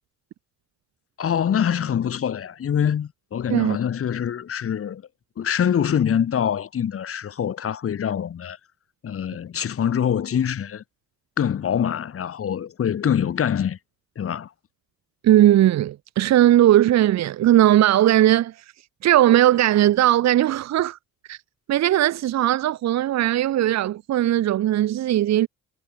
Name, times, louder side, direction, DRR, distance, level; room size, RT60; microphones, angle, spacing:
voice 1, 1.2-5.0 5.4-8.6 9.0-10.8 11.4-13.8 14.2-14.5, left 8 dB, 50° left, 1.5 m, -24 dB
voice 2, 15.2-18.6 19.0-21.0 21.3-21.4 21.7-25.5, right 13 dB, 60° right, 0.8 m, -18 dB
cardioid pair, 90°, 30 cm